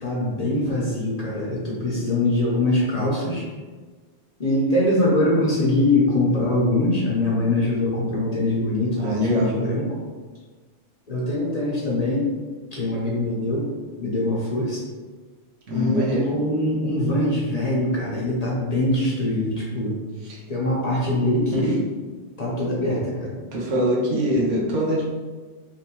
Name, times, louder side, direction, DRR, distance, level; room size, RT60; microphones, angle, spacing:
voice 1, 0.0-3.4 4.4-10.0 11.1-12.3 12.7-13.7 14.0-14.8 15.7-20.0 20.5-21.8 22.4-23.3, left 1 dB, 40° left, -5 dB, 0.8 m, -23 dB
voice 2, 9.0-9.5 15.7-16.2 20.2-20.4 21.5-21.7 23.5-25.0, equal, 85° right, -3 dB, 1.2 m, -23 dB
3.5 x 3.0 x 2.9 m, 1.4 s
omnidirectional pair, 1.2 m